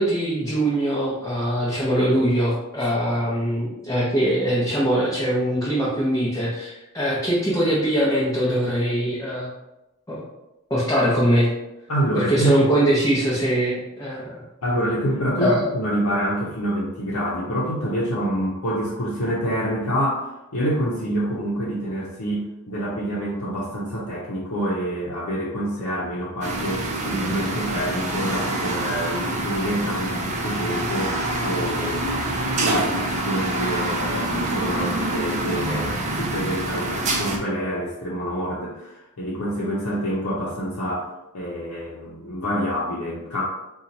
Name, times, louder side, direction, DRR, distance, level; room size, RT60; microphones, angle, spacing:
voice 1, 0.0-9.5 10.1-10.2 10.7-11.5 12.1-14.4 15.4-15.7, right 1 dB, 15° left, -8 dB, 0.7 m, -22 dB
voice 2, 11.9-12.6 14.6-43.4, equal, 85° left, -7 dB, 0.7 m, -27 dB
sound 1, 26.4-37.4, right 1 dB, 35° right, 0.5 m, -26 dB
2.9 x 2.3 x 4.0 m, 0.95 s
head